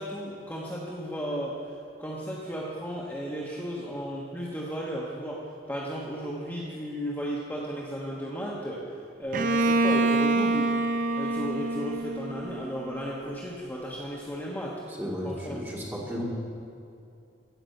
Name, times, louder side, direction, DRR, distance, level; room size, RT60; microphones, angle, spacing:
voice 1, 0.0-10.8 11.1-14.8 15.2-15.6, equal, 10° left, -5 dB, 1.2 m, -34 dB
Bowed string instrument, 9.3-13.1, right 2 dB, 50° right, 0.5 m, -26 dB
voice 2, 15.0-16.2, equal, 10° right, -5 dB, 2.5 m, -34 dB
16.5 x 5.9 x 7.7 m, 2.6 s
head